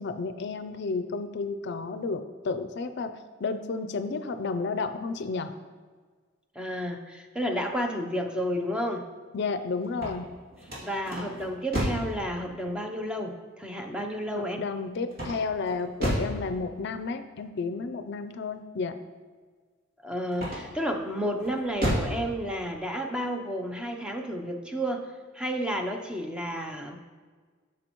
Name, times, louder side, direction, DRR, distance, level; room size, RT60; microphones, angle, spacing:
voice 1, 0.0-5.5 9.3-10.3 14.3-19.0, left 4 dB, 60° left, 10 dB, 0.4 m, -32 dB
voice 2, 6.5-9.1 10.8-14.6 20.0-25.1 25.3-27.0, equal, 5° right, 3 dB, 0.6 m, -31 dB
sound 1, 9.8-12.2 15.1-16.4 20.3-20.9 21.4-22.2, equal, 50° right, 2.5 m, -31 dB
12.0 x 6.1 x 3.0 m, 1.5 s
head